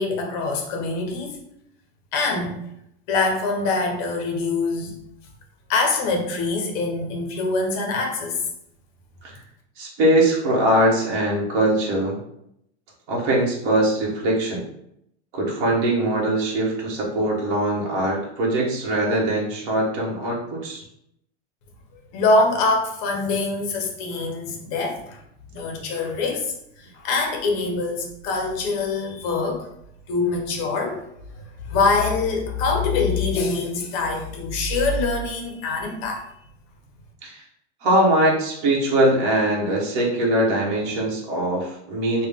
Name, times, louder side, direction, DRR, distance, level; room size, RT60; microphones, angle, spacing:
voice 1, 0.0-1.4 2.1-2.6 3.1-4.9 5.7-8.4 22.1-25.2 25.5-29.7 30.1-31.0 31.3-36.3, left 3 dB, 35° left, 2 dB, 0.6 m, -24 dB
voice 2, 9.8-12.2 13.1-14.6 15.3-20.8 37.2-37.4 37.8-42.3, right 1 dB, 50° right, -2 dB, 1.1 m, -22 dB
3.6 x 2.1 x 3.4 m, 0.76 s
supercardioid pair, 170°, 34 cm